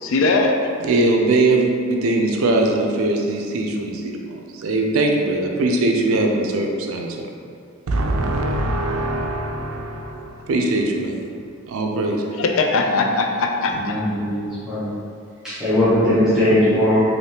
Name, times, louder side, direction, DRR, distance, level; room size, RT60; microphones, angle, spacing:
voice 1, 0.0-0.7 12.4-14.0, left 3 dB, 70° left, 3 dB, 0.3 m, -20 dB
voice 2, 0.8-7.3 7.9-11.3 11.7-12.2, right 2 dB, 85° right, 1 dB, 0.4 m, -21 dB
voice 3, 13.7-14.9 15.4-17.0, left 1 dB, 5° right, -15 dB, 0.8 m, -19 dB
3.3 x 2.6 x 2.8 m, 2.4 s
head